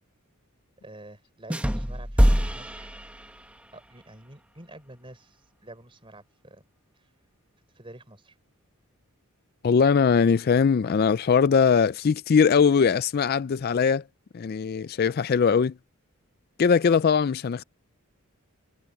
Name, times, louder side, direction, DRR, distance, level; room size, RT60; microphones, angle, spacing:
voice 1, 0.8-2.9 3.7-6.6 7.7-8.4, right 1 dB, 25° right, 3.8 m, -48 dB
sound 1, 1.5-3.7, equal, 5° right, 1.2 m, -24 dB
voice 2, 9.6-14.0 14.3-15.7 16.6-17.6, left 6 dB, 45° left, 0.3 m, -21 dB
head